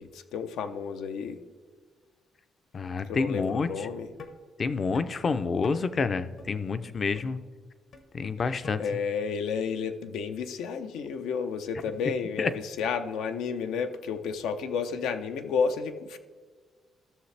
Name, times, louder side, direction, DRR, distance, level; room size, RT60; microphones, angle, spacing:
voice 1, 0.0-1.4 3.1-4.1 6.7-6.9 8.4-8.5 8.8-16.2, left 6 dB, 85° left, 8 dB, 0.6 m, -31 dB
voice 2, 2.7-3.9 4.6-7.4 8.1-8.8 12.4-12.5, left 4 dB, 40° left, 11 dB, 0.5 m, -28 dB
sound 1, 3.4-3.5 4.2-4.3 4.9-5.1 5.6-5.8 6.4-6.5 7.1-7.3 7.9-8.1 8.6-8.7, left 5 dB, 65° left, 1.0 m, -44 dB
14.5 x 6.5 x 3.3 m, 1.5 s
cardioid pair, 90°, 0 cm